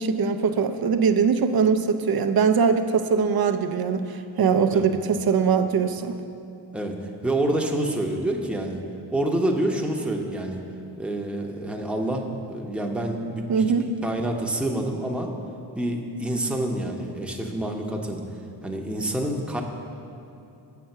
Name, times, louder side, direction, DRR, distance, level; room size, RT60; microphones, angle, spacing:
voice 1, 0.0-6.2 13.5-13.9, right 6 dB, 50° right, 9 dB, 0.6 m, -22 dB
voice 2, 7.2-8.8 9.1-10.6 11.0-15.3 15.7-18.2 18.6-19.6, right 1 dB, ahead, 1 dB, 0.8 m, -27 dB
7.0 x 5.8 x 6.6 m, 2.7 s
cardioid pair, 60°, 46 cm